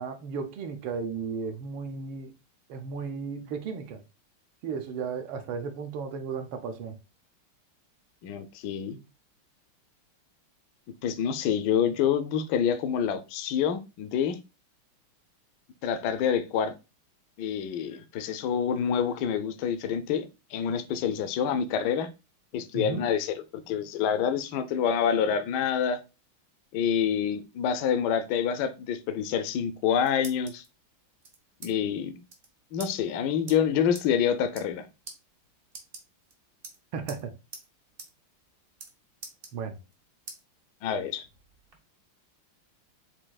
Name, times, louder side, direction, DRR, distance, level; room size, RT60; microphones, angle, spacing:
voice 1, 0.0-2.3 2.7-4.0 4.6-7.0 22.7-23.0 36.9-37.3 39.5-39.8, right 5 dB, 75° right, 1.4 m, -34 dB
voice 2, 8.2-9.0 11.0-14.4 15.8-16.7 17.4-22.1 22.5-26.0 26.7-30.6 31.6-32.1 32.7-34.9 40.8-41.3, left 8 dB, 75° left, 1.0 m, -27 dB
sound 1, 29.6-30.7 31.2-31.7 32.0-32.1 32.3-32.5 32.8-32.9 33.5-33.6 33.9-34.1 34.4-34.8 35.1-35.2 35.7-36.3 36.6-37.2 37.5-37.7 38.0-38.1 38.4-38.9 39.2-39.9 40.3-40.4 40.9-41.8, right 3 dB, 55° right, 0.6 m, -44 dB
7.4 x 2.7 x 2.2 m
omnidirectional pair, 2.4 m